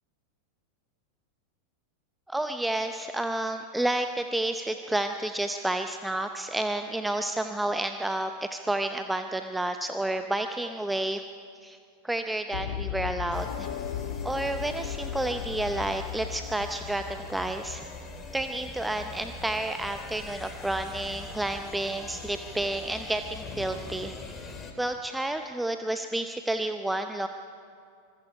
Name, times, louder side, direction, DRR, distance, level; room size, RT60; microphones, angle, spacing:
voice 1, 2.3-11.2 11.6-11.8 12.0-13.7 14.2-17.8 18.3-24.1 24.4-24.5 24.8-27.3, right 1 dB, 5° right, 7 dB, 0.7 m, -30 dB
sound 1, 12.5-18.5, left 9 dB, 60° left, 2.0 m, -37 dB
sound 2, 13.3-24.7, left 4 dB, 20° left, 2.8 m, -43 dB
25.5 x 21.5 x 5.0 m, 2.3 s
figure-of-eight pair, 90°, 0 cm